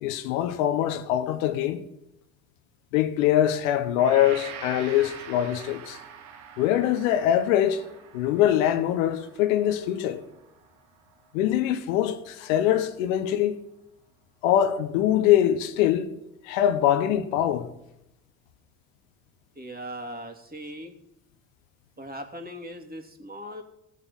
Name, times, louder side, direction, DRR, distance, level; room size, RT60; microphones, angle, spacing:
voice 1, 0.0-1.8 2.9-6.0 6.6-7.8 8.1-10.2 11.3-13.6 14.4-16.1 16.4-17.7, left 11 dB, 80° left, 1.0 m, -23 dB
Gong, 4.0-12.0, right 7 dB, 75° right, 1.9 m, -45 dB
voice 2, 19.5-21.0 22.0-23.6, equal, 20° right, 2.9 m, -39 dB
17.5 x 7.4 x 5.5 m
hypercardioid pair, 50°, 40 cm